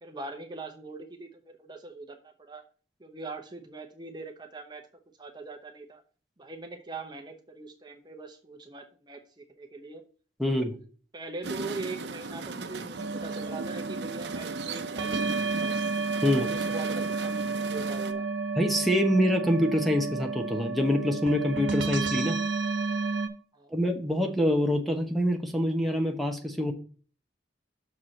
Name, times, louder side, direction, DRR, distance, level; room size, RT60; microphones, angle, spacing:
voice 1, 0.0-2.6 3.0-4.8 5.2-6.0 6.4-10.0 10.5-10.9 11.1-15.2 15.5-15.8 16.2-18.3 23.5-23.8, right 3 dB, 25° right, 4 dB, 0.9 m, -41 dB
voice 2, 10.4-10.7 16.2-16.5 18.6-22.4 23.7-26.7, equal, ahead, 4 dB, 1.0 m, -25 dB
sound 1, 11.4-18.1, right 3 dB, 70° right, 0.7 m, -37 dB
sound 2, 13.0-23.3, right 4 dB, 90° right, 1.0 m, -31 dB
6.6 x 4.7 x 5.7 m, 0.39 s
head